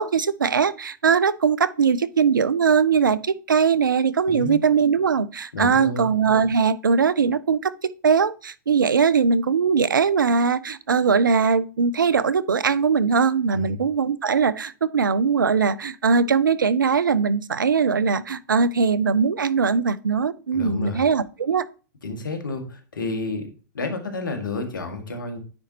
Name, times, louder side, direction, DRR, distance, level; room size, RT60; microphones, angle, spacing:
voice 1, 0.0-7.7 8.0-21.6, right 5 dB, 90° right, 0.5 m, -20 dB
voice 2, 4.3-4.6 5.5-6.1 13.5-13.8 20.5-21.0 22.0-25.4, left 3 dB, 85° left, 1.8 m, -30 dB
9.4 x 5.1 x 2.8 m
hypercardioid pair, 110°, 10 cm